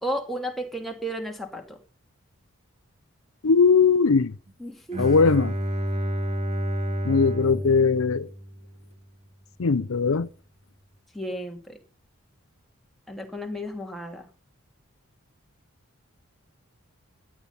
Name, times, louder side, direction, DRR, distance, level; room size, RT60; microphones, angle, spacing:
voice 1, 0.0-1.8 4.6-5.2 11.1-11.8 13.1-14.3, equal, ahead, 2.6 m, -33 dB
voice 2, 3.4-4.4 5.0-5.5 7.0-8.3 9.6-10.3, left 5 dB, 75° left, 0.6 m, -20 dB
Bowed string instrument, 4.9-8.9, equal, 30° right, 1.9 m, -30 dB
16.0 x 10.0 x 5.6 m
head